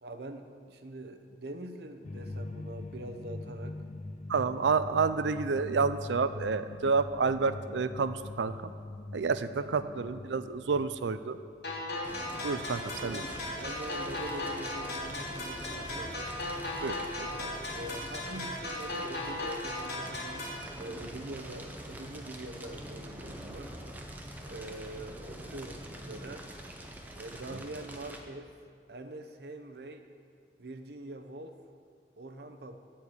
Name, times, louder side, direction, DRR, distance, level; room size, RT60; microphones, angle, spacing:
voice 1, 0.0-3.8 9.6-9.9 12.9-16.3 17.7-23.7 24.4-26.5 27.2-28.5 28.9-30.0 30.6-31.6 32.2-32.8, right 1 dB, 65° right, 7 dB, 0.8 m, -44 dB
sound 1, 2.0-12.2, left 2 dB, 40° left, 0.5 m, -43 dB
voice 2, 4.3-8.7 9.1-11.4 12.4-13.2 16.8-17.5 27.5-27.6, right 4 dB, 90° right, 12 dB, 0.5 m, -30 dB
sound 2, 11.6-20.6, left 2 dB, 65° left, 2.7 m, -37 dB
Fire, 12.0-28.2, right 1 dB, 10° right, 0.8 m, -44 dB
13.0 x 4.6 x 8.3 m, 2.2 s
head